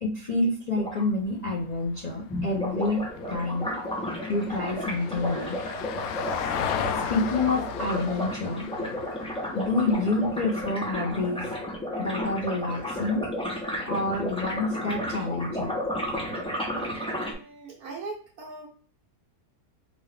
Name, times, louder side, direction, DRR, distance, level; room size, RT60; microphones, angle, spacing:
voice 1, 0.0-3.7 4.3-5.6 7.1-9.0 9.5-11.5 12.0-13.2 13.8-15.8, left 2 dB, 50° left, -3 dB, 0.5 m, -28 dB
sound 1, 0.7-1.0 2.3-17.3, equal, 5° left, 0.7 m, -32 dB
Vehicle, 1.3-11.7 14.0-14.1, left 8 dB, 70° left, 1.0 m, -36 dB
voice 2, 17.1-18.7, right 3 dB, 70° right, -4 dB, 1.4 m, -40 dB
5.1 x 2.8 x 3.3 m, 0.42 s
omnidirectional pair, 1.7 m